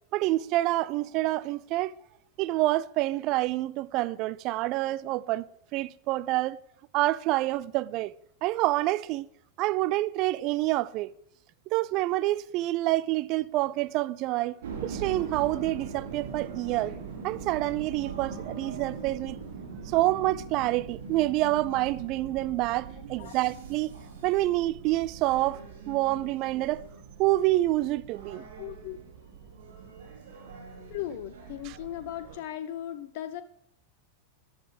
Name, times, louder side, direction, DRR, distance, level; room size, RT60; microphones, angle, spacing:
voice 1, 0.1-1.9 2.4-5.5 5.7-6.6 6.9-8.1 8.4-9.3 9.6-11.1 11.7-14.6 14.8-16.9 17.2-19.4 19.9-23.9 24.2-25.6 25.9-26.8 27.2-28.4, right 17 dB, 40° right, 0.5 m, -27 dB
sound 1, 14.6-32.4, right 5 dB, 60° right, 3.5 m, -41 dB
voice 2, 28.6-29.0 30.9-33.4, left 12 dB, 50° left, 0.6 m, -37 dB
14.5 x 10.5 x 5.0 m
figure-of-eight pair, 90°, 0 cm